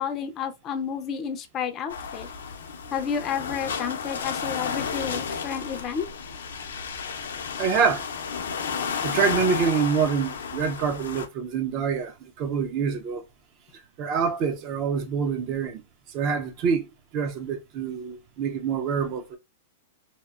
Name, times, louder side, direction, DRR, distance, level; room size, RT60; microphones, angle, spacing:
voice 1, 0.0-2.3 2.9-6.1, left 7 dB, 30° left, 0.4 m, -31 dB
sound 1, 1.9-11.3, left 6 dB, 85° left, 0.5 m, -32 dB
voice 2, 7.6-8.1 9.0-13.2 14.0-15.8 16.1-19.4, right 6 dB, 40° right, 0.5 m, -26 dB
2.8 x 2.1 x 2.4 m
hypercardioid pair, 130°, 0 cm